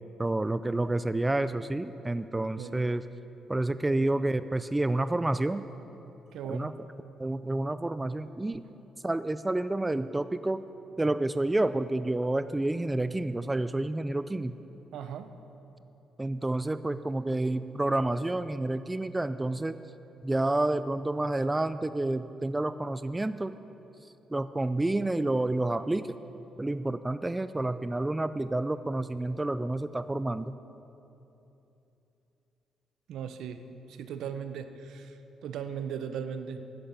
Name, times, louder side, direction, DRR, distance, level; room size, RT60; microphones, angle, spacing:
voice 1, 0.2-3.0 3.5-5.6 6.5-6.7 7.2-8.6 9.0-10.6 11.0-14.5 16.2-19.8 20.2-23.5 24.3-26.1 26.6-30.5, right 2 dB, 15° right, 13 dB, 0.3 m, -29 dB
voice 2, 2.6-2.9 3.9-4.1 6.3-6.7 14.9-15.3 33.1-33.6 33.9-36.6, right 8 dB, 80° right, 9 dB, 0.7 m, -38 dB
10.5 x 10.5 x 6.7 m, 2.9 s
cardioid pair, 90°, 0 cm